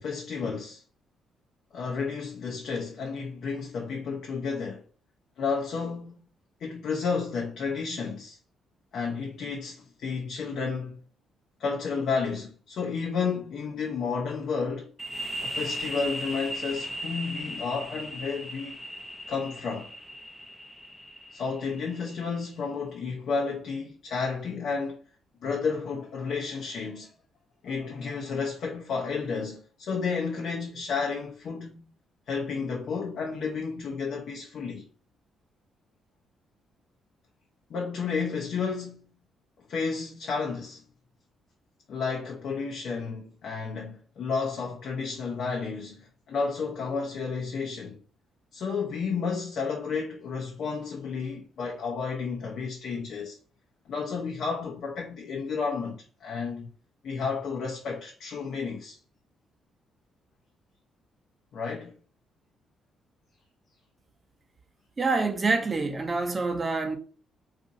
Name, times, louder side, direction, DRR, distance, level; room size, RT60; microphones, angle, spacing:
voice 1, 0.0-0.8 1.7-4.8 5.4-6.3 6.6-8.4 8.9-11.0 11.6-14.9 15.4-18.8 19.3-19.9 21.3-25.0 25.4-27.1 27.6-31.8 32.3-34.9 37.7-39.0 39.7-40.8 41.9-48.0 48.5-53.3 53.9-56.7 57.0-59.0 61.5-61.9, left 5 dB, 65° left, 0.7 m, -32 dB
sound 1, 15.0-22.5, equal, 5° left, 0.5 m, -37 dB
voice 2, 65.0-67.0, right 3 dB, 30° right, 0.7 m, -26 dB
2.5 x 2.5 x 3.9 m
cardioid pair, 90°, 0 cm